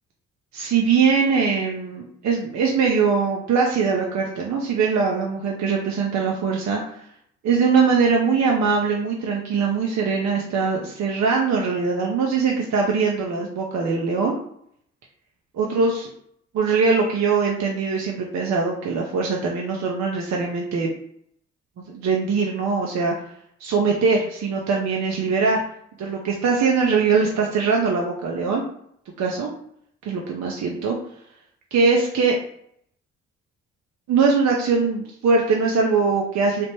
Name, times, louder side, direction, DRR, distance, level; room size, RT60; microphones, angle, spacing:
voice 1, 0.5-6.8 7.4-14.4 15.5-16.1 16.5-20.9 21.9-23.1 23.6-25.6 26.0-28.6 29.2-29.5 30.0-31.0 31.7-32.3 34.1-36.7, right 5 dB, 60° right, 0 dB, 0.6 m, -21 dB
3.3 x 2.0 x 2.9 m, 0.67 s
hypercardioid pair, 45°, 32 cm